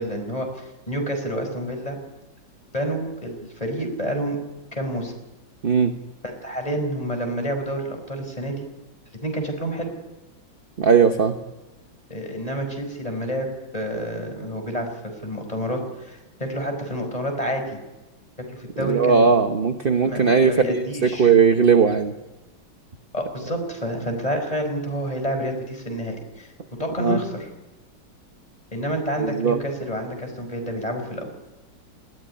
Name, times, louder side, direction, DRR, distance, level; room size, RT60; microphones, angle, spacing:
voice 1, 0.0-2.0 2.7-4.4 4.7-5.1 6.4-8.7 9.2-9.9 12.1-17.8 18.5-19.3 20.0-21.3 23.1-26.5 26.8-27.5 28.7-31.4, equal, 15° left, 4 dB, 5.0 m, -29 dB
voice 2, 10.8-11.3 18.8-22.1 27.0-27.2 29.2-29.6, right 6 dB, 40° right, 7 dB, 0.9 m, -18 dB
20.0 x 15.5 x 10.0 m, 1.0 s
omnidirectional pair, 2.2 m